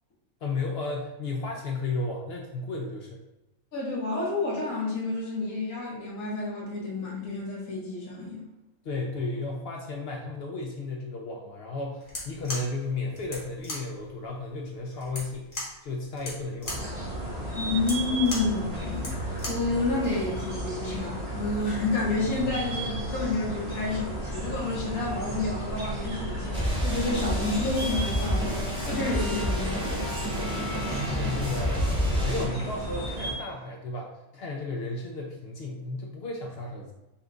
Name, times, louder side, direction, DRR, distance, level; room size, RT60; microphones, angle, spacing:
voice 1, 0.4-3.2 8.8-15.5 15.8-16.8 31.1-31.8 32.1-36.9, left 3 dB, 65° left, 0 dB, 0.6 m, -33 dB
voice 2, 3.7-8.4 17.5-30.1, left 3 dB, 80° left, -4 dB, 1.6 m, -30 dB
sound 1, 12.0-19.7, left 1 dB, 40° left, 1.1 m, -39 dB
sound 2, 16.6-33.3, right 1 dB, 45° right, 1.3 m, -34 dB
sound 3, 26.5-32.4, equal, 5° right, 0.9 m, -29 dB
4.3 x 2.3 x 3.7 m, 0.99 s
omnidirectional pair, 1.5 m